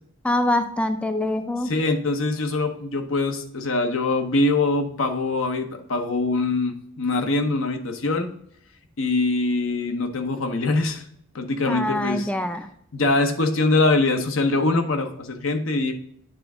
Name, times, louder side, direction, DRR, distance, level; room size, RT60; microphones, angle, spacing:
voice 1, 0.2-1.7 11.7-12.7, left 1 dB, 5° left, 8 dB, 0.4 m, -24 dB
voice 2, 1.6-8.3 9.0-11.0 11.3-12.3 12.9-15.9, left 2 dB, 75° left, 6 dB, 0.9 m, -23 dB
8.9 x 3.5 x 4.8 m, 0.70 s
head